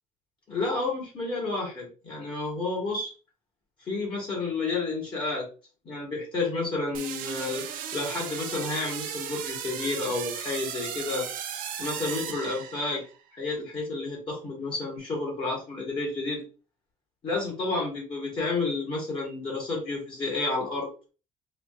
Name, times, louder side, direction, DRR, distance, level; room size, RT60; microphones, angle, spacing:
voice 1, 0.5-3.1 3.9-5.5 5.8-7.6 7.9-11.3 11.8-13.0 13.4-16.4 17.2-20.9, left 3 dB, 35° left, -3 dB, 1.6 m, -30 dB
sound 1, 6.9-13.2, right 9 dB, 80° right, 0.6 m, -36 dB
4.9 x 2.5 x 2.5 m, 0.35 s
cardioid pair, 150°, 14 cm